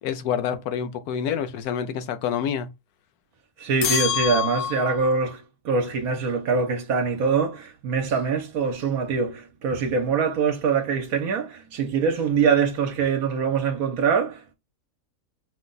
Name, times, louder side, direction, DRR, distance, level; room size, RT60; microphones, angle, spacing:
voice 1, 0.0-2.7, left 8 dB, 85° left, 1.1 m, -27 dB
voice 2, 3.6-14.5, right 5 dB, 75° right, 1.2 m, -24 dB
sound 1, 3.8-5.2, left 9 dB, 60° left, 0.6 m, -26 dB
5.0 x 2.2 x 3.8 m
omnidirectional pair, 1.6 m